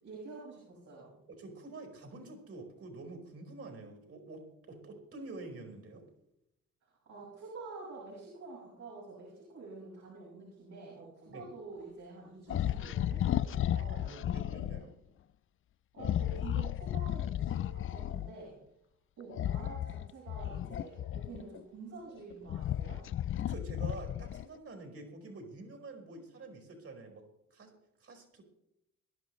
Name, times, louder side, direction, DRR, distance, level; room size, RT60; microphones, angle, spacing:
voice 1, 0.0-1.1 6.8-14.1 15.9-18.6 19.2-23.0, right 3 dB, 65° right, -4 dB, 6.2 m, -48 dB
voice 2, 1.3-6.1 11.2-11.5 14.0-14.9 23.4-28.4, right 3 dB, 50° right, 3 dB, 4.8 m, -47 dB
sound 1, 12.5-14.8 16.0-18.3 19.3-21.6 22.2-24.6, left 11 dB, 45° left, 0.4 m, -34 dB
22.0 x 11.5 x 3.2 m, 0.81 s
cardioid pair, 90°, 30 cm